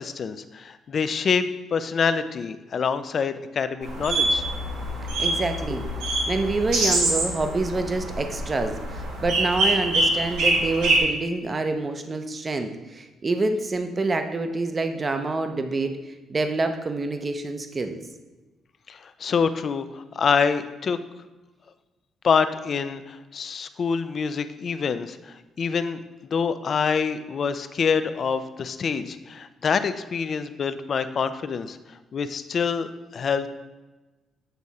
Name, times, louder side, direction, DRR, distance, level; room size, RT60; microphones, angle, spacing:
voice 1, 0.0-1.4 1.7-4.4 18.9-21.0 22.2-26.0 26.3-31.8 32.1-33.5, left 6 dB, 50° left, 11 dB, 0.4 m, -26 dB
sound 1, 3.8-11.0, right 1 dB, 90° right, 1.5 m, -25 dB
voice 2, 5.2-18.0, right 3 dB, 30° right, 7 dB, 0.6 m, -27 dB
8.0 x 3.6 x 4.1 m, 1.1 s
cardioid pair, 90°, 0 cm